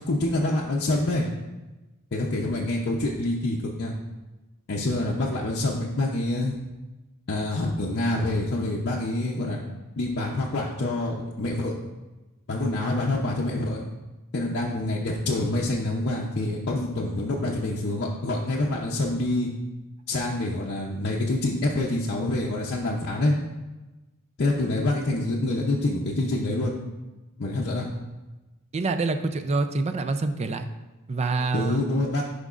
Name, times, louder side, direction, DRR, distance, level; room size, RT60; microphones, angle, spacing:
voice 1, 0.1-1.3 2.1-3.9 4.7-6.6 7.3-9.6 10.0-11.7 12.5-13.8 14.3-19.5 20.1-23.4 24.4-26.7 27.4-27.9 31.5-32.2, left 2 dB, 50° left, -3 dB, 0.6 m, -26 dB
voice 2, 28.7-30.7 31.1-31.9, right 3 dB, 30° right, 9 dB, 0.4 m, -26 dB
10.5 x 5.1 x 2.4 m, 1.1 s
head